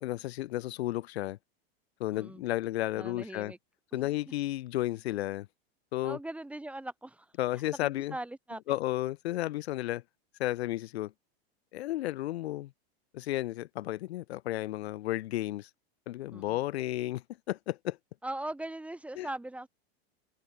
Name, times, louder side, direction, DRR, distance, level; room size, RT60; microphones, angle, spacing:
voice 1, 0.0-1.4 2.0-3.5 3.9-5.5 5.9-6.2 7.4-8.2 8.7-10.0 10.4-11.1 11.7-12.7 13.1-15.7 16.1-18.0 19.2-19.3, left 15 dB, 80° left, 1.3 m, -33 dB
voice 2, 3.0-3.6 3.9-4.1 6.0-7.3 7.7-8.6 16.3-16.6 18.2-19.7, right 1 dB, 5° right, 1.5 m, -40 dB
supercardioid pair, 150°, 31 cm